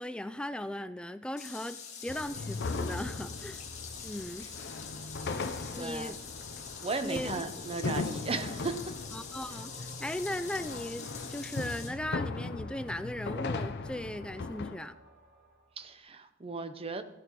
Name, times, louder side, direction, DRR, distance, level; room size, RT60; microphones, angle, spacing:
voice 1, 0.0-3.6 4.0-4.5 5.7-6.2 7.0-7.4 9.1-14.9, left 1 dB, 5° left, 11 dB, 0.3 m, -38 dB
sound 1, 1.4-11.9, left 6 dB, 35° left, 1.9 m, -45 dB
sound 2, 2.1-14.8, left 3 dB, 55° left, 0.6 m, -38 dB
voice 2, 5.7-6.2 6.8-8.9 15.8-17.0, right 3 dB, 30° right, 9 dB, 0.7 m, -36 dB
sound 3, 7.3-16.0, right 1 dB, 60° right, 2.8 m, -56 dB
15.5 x 10.5 x 3.0 m, 0.95 s
head